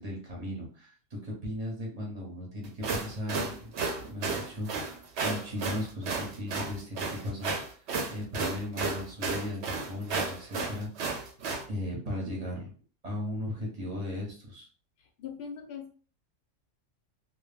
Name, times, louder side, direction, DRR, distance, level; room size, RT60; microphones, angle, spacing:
voice 1, 0.0-3.7 4.0-11.2 11.7-12.7 13.0-14.7, left 1 dB, 35° right, -3 dB, 0.8 m, -37 dB
sound 1, 2.6-11.6, right 4 dB, 65° right, 0.8 m, -33 dB
voice 2, 15.0-15.9, left 7 dB, 65° left, 4 dB, 0.6 m, -42 dB
2.2 x 2.1 x 3.3 m, 0.40 s
omnidirectional pair, 1.3 m